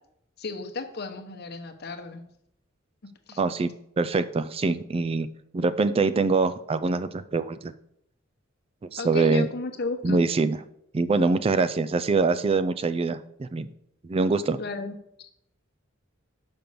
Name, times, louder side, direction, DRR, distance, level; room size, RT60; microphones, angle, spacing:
voice 1, 0.4-2.2 3.3-3.4 9.0-10.2 14.6-15.3, left 3 dB, 55° left, 6 dB, 1.0 m, -34 dB
voice 2, 3.4-3.7 4.0-5.3 5.5-7.7 8.9-9.5 10.0-10.6 10.9-13.7 14.0-14.6, right 3 dB, 30° right, 12 dB, 0.3 m, -24 dB
5.9 x 5.3 x 6.7 m, 0.75 s
head